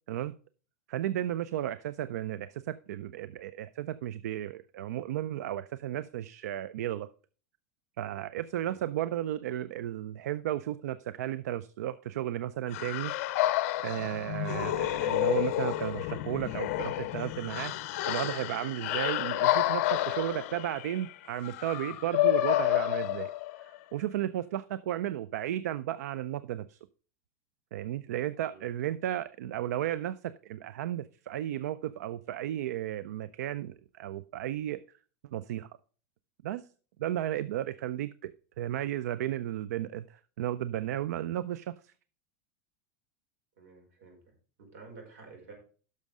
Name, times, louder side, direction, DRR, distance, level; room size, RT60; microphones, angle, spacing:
voice 1, 0.9-7.1 8.0-13.1 13.8-23.3 23.6-26.8 27.7-34.8 35.3-35.7 36.4-36.7 37.0-38.3 38.6-41.9, right 12 dB, 85° right, 16 dB, 0.5 m, -34 dB
sound 1, 12.7-23.8, left 15 dB, 55° left, 0.7 m, -30 dB
voice 2, 43.6-44.2 44.6-45.5, right 4 dB, 70° right, 2 dB, 5.0 m, -50 dB
10.5 x 6.5 x 4.8 m, 0.40 s
supercardioid pair, 160°, 9 cm